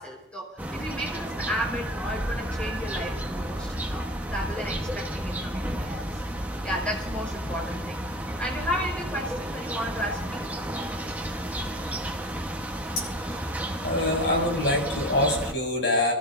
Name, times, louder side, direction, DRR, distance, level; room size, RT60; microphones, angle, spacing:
voice 1, 0.0-8.1 8.4-10.5, equal, 5° left, -2 dB, 4.3 m, -34 dB
sound 1, 0.6-15.5, right 1 dB, 10° right, 1.1 m, -32 dB
voice 2, 12.9-13.4 13.8-16.1, left 1 dB, 75° left, -1 dB, 6.8 m, -25 dB
27.5 x 13.5 x 2.6 m, 0.94 s
head